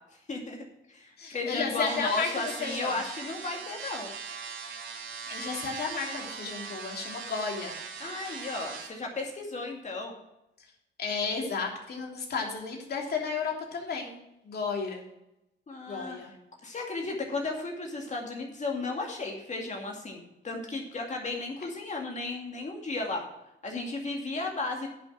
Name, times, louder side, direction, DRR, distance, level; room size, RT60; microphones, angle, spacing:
voice 1, 0.3-4.1 8.0-10.1 15.7-16.2 16.6-23.2 23.6-24.9, left 3 dB, 35° left, 1 dB, 2.3 m, -34 dB
voice 2, 1.2-2.3 2.6-2.9 5.3-7.7 11.0-14.2 14.4-15.0 15.9-16.3, left 5 dB, 55° left, 0 dB, 3.1 m, -33 dB
sound 1, 1.9-8.9, right 5 dB, 75° right, 2.6 m, -40 dB
10.5 x 6.3 x 6.0 m, 0.89 s
cardioid pair, 90°, 20 cm